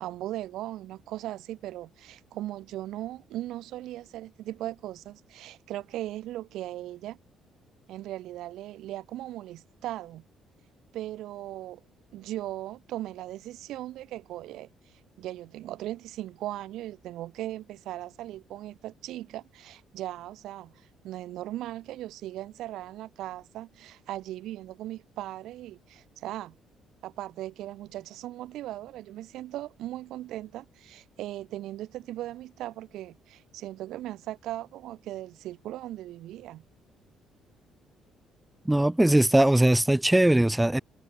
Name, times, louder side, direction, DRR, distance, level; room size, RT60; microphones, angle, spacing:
voice 1, 0.0-7.2 7.9-10.2 10.9-11.8 12.1-14.7 15.2-26.6 27.0-36.6, right 14 dB, 80° right, 1.6 m, -38 dB
voice 2, 38.7-40.8, right 1 dB, 5° right, 0.4 m, -20 dB
cardioid pair, 110°, 0 cm